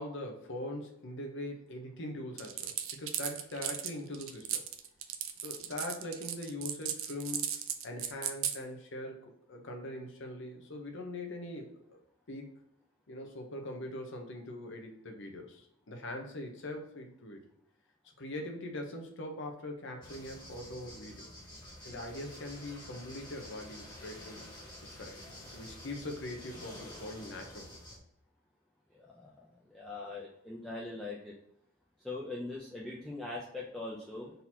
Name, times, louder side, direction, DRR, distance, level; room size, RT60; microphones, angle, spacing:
voice 1, 0.0-4.6 5.4-7.6 7.8-12.0 12.3-12.5 13.1-17.4 18.2-21.3 21.8-24.4 24.8-27.8, left 1 dB, 60° left, 2 dB, 0.9 m, -42 dB
sound 1, 2.4-8.6, right 10 dB, 75° right, 0.5 m, -36 dB
sound 2, 20.0-28.0, left 1 dB, 20° left, 1.3 m, -49 dB
voice 2, 29.0-29.3 29.7-31.3 32.0-34.3, left 2 dB, ahead, -5 dB, 0.5 m, -41 dB
3.9 x 2.8 x 4.2 m, 0.75 s
head